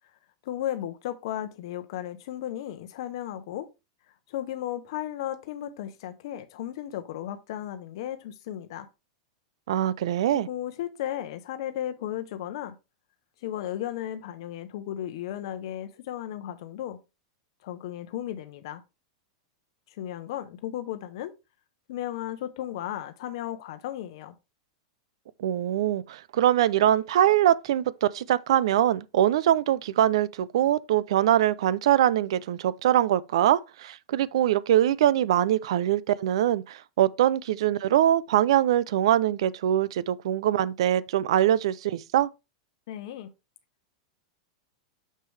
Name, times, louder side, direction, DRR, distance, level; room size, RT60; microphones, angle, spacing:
voice 1, 0.4-3.7 4.3-8.9 10.3-12.8 13.4-17.0 17.6-18.8 19.9-21.3 21.9-24.3 42.9-43.3, left 12 dB, 65° left, 0.8 m, -35 dB
voice 2, 9.7-10.5 25.4-42.3, right 11 dB, 75° right, 0.5 m, -23 dB
6.7 x 6.2 x 3.3 m
supercardioid pair, 135°, 3 cm